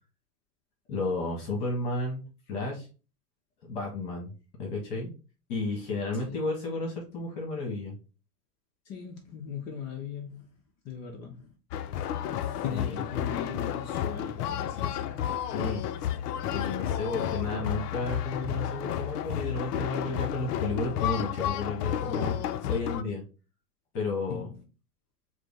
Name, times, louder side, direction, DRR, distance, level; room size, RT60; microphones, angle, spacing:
voice 1, 0.9-2.2 2.5-2.9 3.7-4.3 4.6-5.1 5.5-7.9 12.5-13.0 15.5-15.8 16.5-22.4 22.6-23.2 23.9-24.5, left 2 dB, 50° left, 1.5 m, -32 dB
voice 2, 8.8-10.5 10.8-11.5 12.6-15.3 24.3-24.6, left 6 dB, 35° left, 0.7 m, -39 dB
sound 1, 11.7-23.0, left 10 dB, 70° left, 0.5 m, -31 dB
4.9 x 2.1 x 3.5 m
hypercardioid pair, 115°, 49 cm